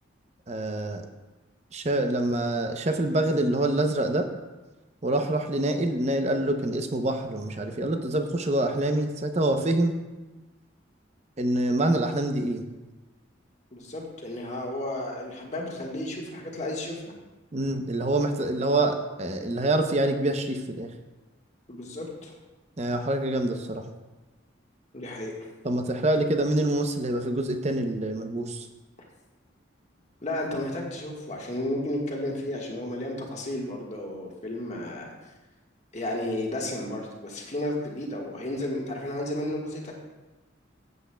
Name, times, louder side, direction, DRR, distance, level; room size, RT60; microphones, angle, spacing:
voice 1, 0.5-1.1 1.7-4.3 5.0-9.9 11.4-12.6 17.5-20.9 22.8-23.9 25.6-28.7, right 1 dB, 35° right, 6 dB, 0.6 m, -26 dB
voice 2, 13.7-17.0 21.7-22.3 24.9-25.5 30.2-35.1 35.9-39.9, left 1 dB, 35° left, -1 dB, 1.4 m, -33 dB
14.5 x 8.1 x 2.2 m, 1.1 s
head